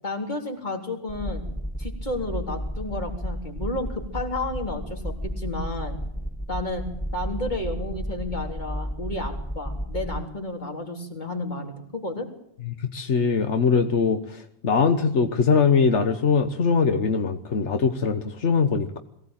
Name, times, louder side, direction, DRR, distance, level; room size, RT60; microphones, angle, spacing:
voice 1, 0.0-1.5 1.8-6.0 6.5-6.8 7.1-12.3, left 2 dB, 40° left, 2 dB, 3.8 m, -32 dB
sound 1, 1.1-10.2, equal, 5° left, 1.2 m, -33 dB
voice 2, 12.6-19.0, left 5 dB, 85° left, 7 dB, 1.6 m, -22 dB
22.5 x 17.0 x 8.9 m, 0.71 s
omnidirectional pair, 1.2 m